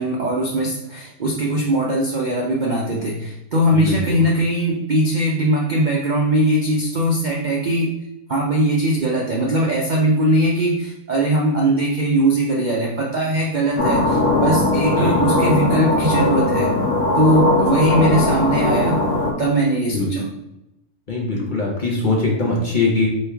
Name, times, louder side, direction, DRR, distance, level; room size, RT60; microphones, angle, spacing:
voice 1, 0.0-7.9 8.3-16.7 17.1-19.0 19.4-20.3 21.3-21.5, right 1 dB, 85° right, -2 dB, 0.4 m, -20 dB
voice 2, 3.7-4.2 15.0-15.3 19.9-20.1 21.1-23.1, left 3 dB, 45° left, -2 dB, 0.6 m, -21 dB
sound 1, 13.8-19.3, left 2 dB, 80° left, 1.4 m, -19 dB
4.6 x 3.3 x 3.4 m, 0.89 s
omnidirectional pair, 1.7 m